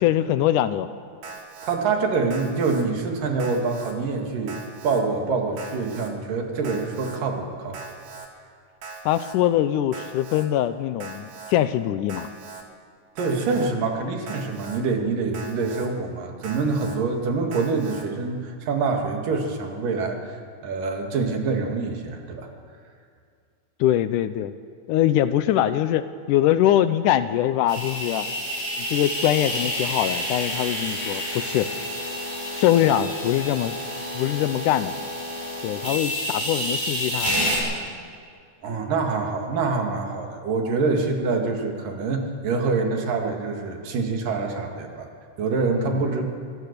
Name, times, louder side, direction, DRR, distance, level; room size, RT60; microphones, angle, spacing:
voice 1, 0.0-0.9 9.1-12.3 23.8-24.5 24.9-28.3 28.8-31.7 32.5-33.8 34.2-34.9 35.6-37.3 45.7-46.0, left 12 dB, 80° left, 12 dB, 2.1 m, -22 dB
Alarm, 1.2-1.8 2.3-2.8 3.4-3.9 4.5-5.0 5.6-6.1 6.6-7.2 7.7-8.3 8.8-9.4 9.9-10.5 11.0-11.5 12.1-12.6 13.2-13.7 14.3-14.8 15.3-15.9 16.4-17.0 17.5-18.0, right 4 dB, 55° right, 3.1 m, -40 dB
voice 2, 1.6-4.6 4.8-7.8 13.2-20.2 20.6-22.5 38.6-45.1 45.4-46.3, right 4 dB, 75° right, 2 dB, 3.7 m, -25 dB
sound 1, 27.7-37.6, equal, 5° right, 7.3 m, -29 dB
24.5 x 17.5 x 6.8 m, 2.2 s
omnidirectional pair, 3.9 m